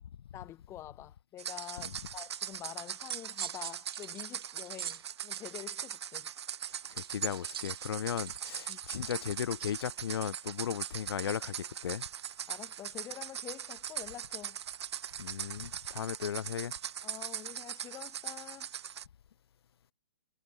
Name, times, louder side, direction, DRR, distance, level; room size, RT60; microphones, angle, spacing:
voice 1, 0.3-6.3 8.7-8.8 12.5-14.6 17.0-18.7, left 13 dB, 20° left, 2.2 m, -47 dB
sound 1, 1.4-19.0, right 9 dB, 70° right, 0.5 m, -41 dB
sound 2, 2.8-5.4 7.0-9.8, right 10 dB, 55° right, 1.4 m, -44 dB
voice 2, 6.9-12.1 15.2-16.7, left 9 dB, 60° left, 1.6 m, -36 dB
hypercardioid pair, 145°, 15 cm